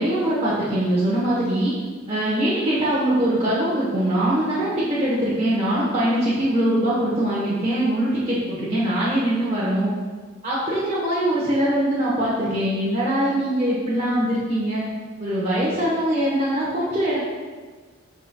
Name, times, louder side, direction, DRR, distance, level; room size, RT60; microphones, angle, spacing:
voice 1, 0.0-1.7 2.1-9.9 10.4-14.8 15.2-17.2, right 1 dB, 30° right, -8 dB, 1.0 m, -22 dB
10.5 x 4.3 x 2.2 m, 1.4 s
head